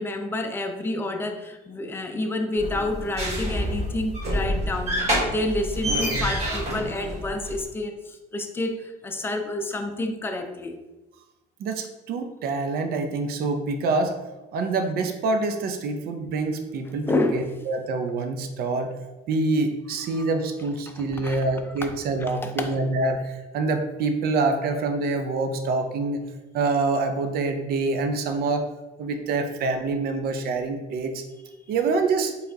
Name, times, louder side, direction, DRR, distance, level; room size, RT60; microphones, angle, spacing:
voice 1, 0.0-10.8 17.1-17.5 20.1-20.3 21.0-21.4 21.8-21.9 22.3-22.8, left 2 dB, 15° left, 5 dB, 0.5 m, -29 dB
sound 1, 2.6-7.6, equal, 40° right, 1.5 m, -27 dB
voice 2, 11.6-14.2 14.5-18.9 19.3-26.2 26.5-28.7 29.0-31.2 31.7-32.3, right 3 dB, 65° right, 5 dB, 0.6 m, -26 dB
4.4 x 3.3 x 2.7 m, 1.1 s
cardioid pair, 110°, 17 cm